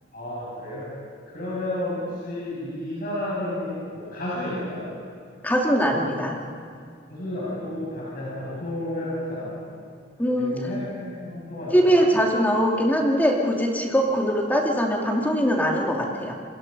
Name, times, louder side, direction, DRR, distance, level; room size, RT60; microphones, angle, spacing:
voice 1, 0.1-0.9 1.3-4.8 7.1-9.5 10.4-12.0, left 1 dB, 45° left, -7 dB, 7.3 m, -31 dB
voice 2, 5.4-6.3 10.2-10.6 11.7-16.3, equal, 10° left, -1 dB, 2.6 m, -22 dB
28.0 x 24.5 x 5.5 m, 2.2 s
head